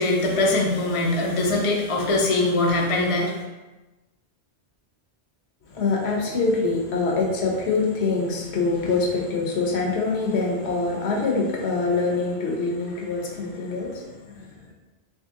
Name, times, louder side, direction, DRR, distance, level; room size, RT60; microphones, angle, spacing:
voice 1, 0.0-3.5, left 2 dB, 45° left, -2 dB, 0.4 m, -22 dB
voice 2, 5.7-14.5, left 3 dB, 70° left, -1 dB, 0.9 m, -24 dB
2.9 x 2.8 x 3.5 m, 1.1 s
omnidirectional pair, 1.2 m